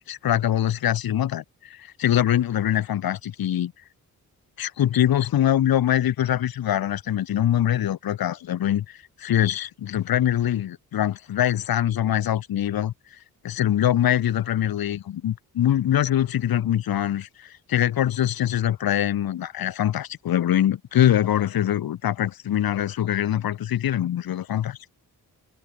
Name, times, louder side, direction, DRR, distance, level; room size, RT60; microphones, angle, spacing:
voice 1, 0.1-3.7 4.6-12.9 13.4-24.8, left 11 dB, 70° left, 0.9 m, -23 dB
cardioid pair, 75°, 37 cm